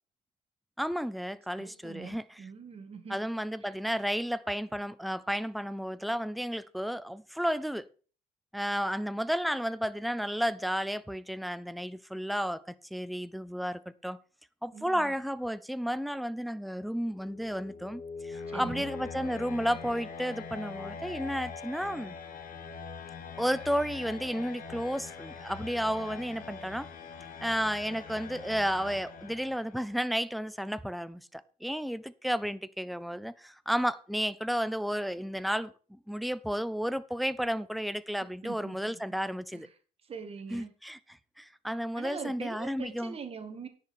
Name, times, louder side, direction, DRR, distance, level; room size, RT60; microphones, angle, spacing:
voice 1, 0.8-2.2 3.1-7.9 8.5-12.6 12.9-14.2 14.6-22.1 23.4-26.9 27.4-39.7 40.5-41.0 41.4-43.1, equal, ahead, 0.6 m, -32 dB
voice 2, 1.6-3.3 3.6-3.7 14.7-15.1 18.5-18.9 38.4-39.2 39.5-39.6 40.1-40.7 42.0-43.7, right 5 dB, 35° right, 1.9 m, -43 dB
sound 1, 17.1-29.9, left 5 dB, 55° left, 1.9 m, -43 dB
10.5 x 6.8 x 6.0 m
cardioid pair, 110°, 17 cm